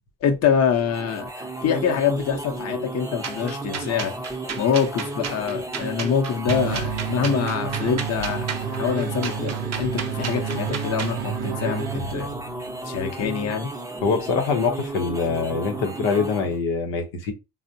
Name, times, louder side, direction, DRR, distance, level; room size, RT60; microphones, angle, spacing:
voice 1, 0.2-4.1 4.6-8.5 8.8-12.3 12.8-13.7, left 7 dB, 40° left, 0.7 m, -25 dB
sound 1, 0.7-16.6, right 2 dB, 10° right, 0.6 m, -33 dB
sound 2, 3.2-11.2, right 6 dB, 45° right, 0.7 m, -34 dB
sound 3, 6.5-12.6, right 9 dB, 80° right, 0.6 m, -31 dB
voice 2, 14.0-17.3, left 5 dB, 85° left, 0.7 m, -24 dB
3.4 x 2.1 x 2.6 m
supercardioid pair, 80°, 38 cm